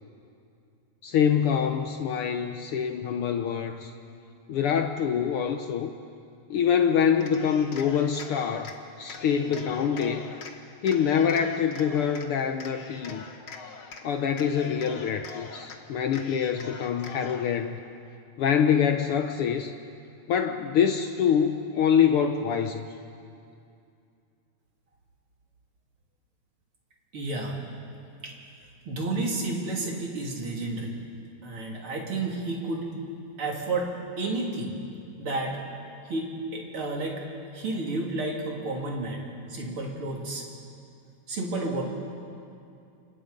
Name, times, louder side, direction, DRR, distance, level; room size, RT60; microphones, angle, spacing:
voice 1, 1.0-3.9 4.5-5.9 6.5-10.3 10.8-13.2 14.0-17.8 18.4-19.7 20.3-22.9, left 7 dB, 75° left, 6 dB, 1.2 m, -25 dB
Cheering, 7.2-8.8 9.1-10.5 10.8-12.3 12.6-14.0 14.3-15.8 16.1-17.5, left 5 dB, 50° left, 1.9 m, -43 dB
voice 2, 27.1-27.6 28.2-28.3 28.9-30.9 31.4-32.9 33.4-33.9 34.2-34.8 35.2-35.6 36.1-37.2 37.5-39.2 39.5-40.4 41.3-41.8, right 2 dB, 45° right, -1 dB, 3.8 m, -31 dB
28.5 x 26.0 x 5.3 m, 2.5 s
omnidirectional pair, 3.5 m